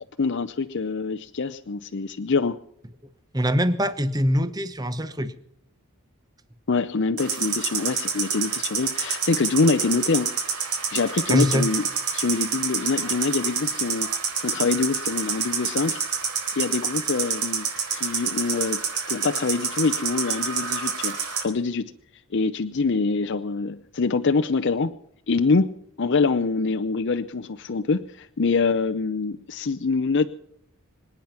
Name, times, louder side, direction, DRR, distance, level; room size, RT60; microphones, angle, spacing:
voice 1, 0.2-2.6 6.7-10.4 10.9-14.1 14.4-16.0 16.6-18.8 19.1-21.9 22.3-25.0 25.3-25.7 26.0-30.3, left 4 dB, 55° left, 9 dB, 0.6 m, -25 dB
voice 2, 3.3-5.3 11.3-11.7, equal, 15° right, 12 dB, 1.0 m, -23 dB
sound 1, 7.2-21.4, right 6 dB, 85° right, 4.2 m, -28 dB
25.5 x 9.1 x 5.9 m, 0.71 s
head